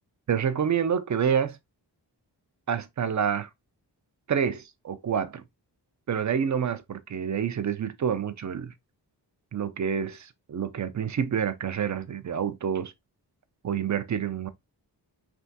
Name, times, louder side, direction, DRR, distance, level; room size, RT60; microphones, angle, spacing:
voice 1, 0.3-1.6 2.7-3.5 4.3-5.4 6.1-8.7 9.5-12.9 13.6-14.5, right 7 dB, 45° right, 0.4 m, -28 dB
3.4 x 2.4 x 2.6 m
cardioid pair, 55°, 43 cm